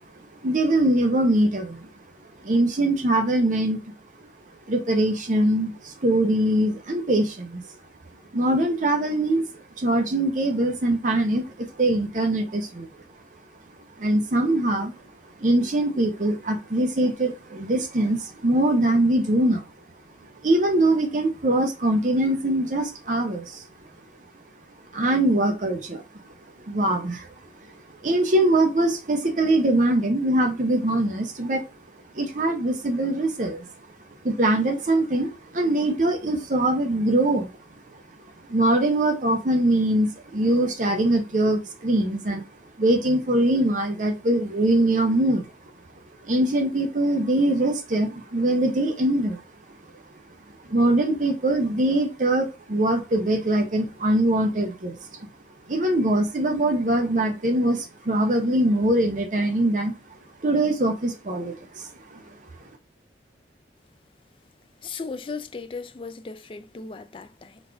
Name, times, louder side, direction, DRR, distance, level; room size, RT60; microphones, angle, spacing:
voice 1, 0.4-1.9 2.4-3.8 4.7-7.6 8.3-9.5 9.8-12.9 14.0-14.9 15.4-19.6 20.4-23.7 24.9-26.0 26.7-27.3 28.0-31.6 32.1-33.7 34.2-37.5 38.5-42.5 42.8-45.4 46.2-49.4 50.7-55.3 55.7-59.9 60.4-62.2, right 1 dB, 45° right, 0.6 m, -22 dB
voice 2, 64.8-67.6, left 4 dB, 30° left, 0.3 m, -36 dB
4.0 x 2.5 x 4.5 m
head